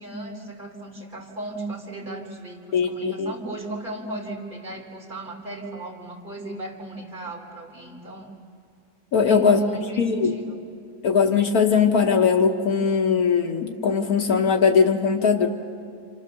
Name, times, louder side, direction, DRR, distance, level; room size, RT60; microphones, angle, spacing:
voice 1, 0.0-8.3 9.2-10.6, right 2 dB, 30° right, -1 dB, 3.9 m, -35 dB
voice 2, 2.7-3.3 9.1-9.6 10.0-10.3 11.0-15.5, left 6 dB, 75° left, 4 dB, 1.6 m, -20 dB
29.5 x 26.5 x 6.8 m, 2.5 s
omnidirectional pair, 1.6 m